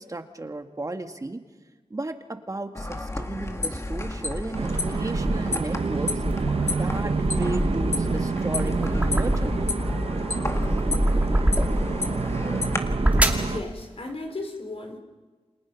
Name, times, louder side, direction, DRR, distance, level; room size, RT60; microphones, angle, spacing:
voice 1, 0.0-1.4 1.9-6.1 6.8-9.6, right 2 dB, 30° right, 6 dB, 1.8 m, -34 dB
sound 1, 2.7-12.8, left 2 dB, 25° left, 1.9 m, -31 dB
sound 2, 3.7-5.6 6.1-9.8 10.2-12.1 12.7-13.5, right 1 dB, 15° right, 2.5 m, -26 dB
Skyline Residential Traffic Distant, 4.5-13.6, right 5 dB, 60° right, 0.7 m, -29 dB
voice 2, 13.4-15.0, left 2 dB, 65° left, 4 dB, 4.0 m, -35 dB
29.0 x 26.0 x 5.9 m, 1.3 s
wide cardioid pair, 105°, 11 cm